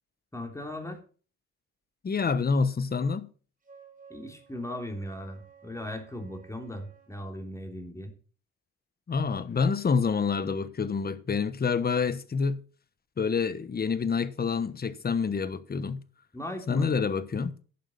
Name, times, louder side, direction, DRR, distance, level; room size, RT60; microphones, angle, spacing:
voice 1, 0.3-1.0 4.1-8.1 16.3-16.9, left 1 dB, 10° left, 3.3 m, -38 dB
voice 2, 2.0-3.3 9.1-12.6 13.2-16.0 16.7-17.6, left 5 dB, 30° left, 1.1 m, -27 dB
Wind instrument woodwind instrument, 3.6-7.2, right 7 dB, 25° right, 4.1 m, -54 dB
11.0 x 7.6 x 5.5 m
cardioid pair, 90°, 30 cm